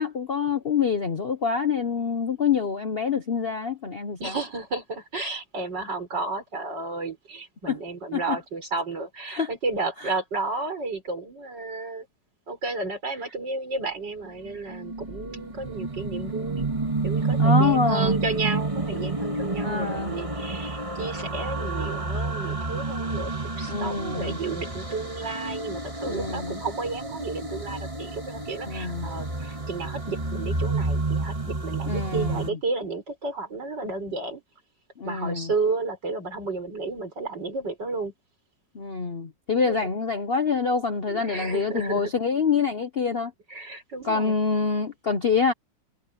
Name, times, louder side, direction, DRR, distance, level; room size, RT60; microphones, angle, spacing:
voice 1, 0.0-4.4 7.7-7.8 8.1-8.4 9.3-9.5 10.0-10.1 17.4-18.2 19.6-20.1 23.7-24.4 26.1-26.5 28.7-29.1 31.9-32.6 35.0-35.5 38.7-43.3 44.0-45.5, left 5 dB, 45° left, 0.8 m, -26 dB
voice 2, 4.2-12.1 12.5-16.7 17.0-34.4 35.0-38.1 39.5-39.9 41.1-42.1 43.5-44.3, right 3 dB, 65° right, 6.0 m, -32 dB
sound 1, 14.5-32.5, right 3 dB, 15° right, 2.6 m, -29 dB
omnidirectional pair, 2.0 m